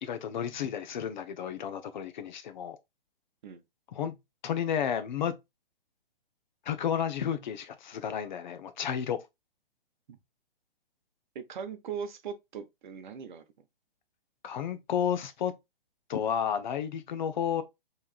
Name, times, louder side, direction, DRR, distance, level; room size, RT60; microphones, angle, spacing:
voice 1, 0.0-2.8 3.9-4.2 4.4-5.4 6.6-9.2 14.4-15.5 16.1-17.6, left 8 dB, 50° left, 0.7 m, -32 dB
voice 2, 11.3-13.4, right 7 dB, 50° right, 0.8 m, -39 dB
4.6 x 3.2 x 2.4 m
hypercardioid pair, 135°, 29 cm